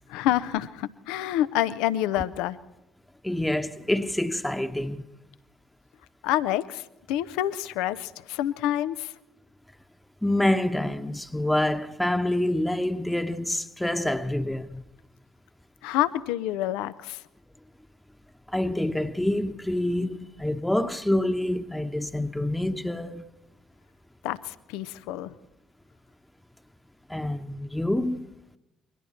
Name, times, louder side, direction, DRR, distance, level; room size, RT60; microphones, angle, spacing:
voice 1, 0.1-2.6 6.2-9.1 15.8-17.2 24.2-25.3, left 13 dB, 70° left, 0.7 m, -28 dB
voice 2, 3.2-5.1 10.2-14.8 18.5-23.2 27.1-28.3, left 1 dB, 5° left, 1.1 m, -27 dB
28.5 x 22.5 x 4.4 m
figure-of-eight pair, 50°, 0 cm